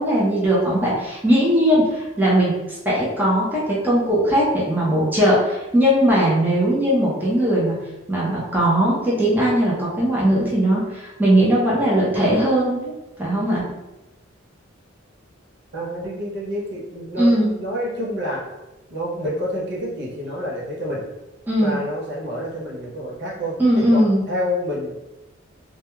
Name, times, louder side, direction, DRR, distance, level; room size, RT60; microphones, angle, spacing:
voice 1, 0.0-7.8 8.1-12.9 13.2-13.6 17.2-17.5 21.5-21.8 23.6-24.2, equal, 10° right, -7 dB, 0.5 m, -19 dB
voice 2, 15.7-17.3 17.6-18.4 18.9-21.0 21.6-25.0, equal, 60° right, -4 dB, 0.7 m, -28 dB
2.2 x 2.2 x 3.0 m, 0.99 s
head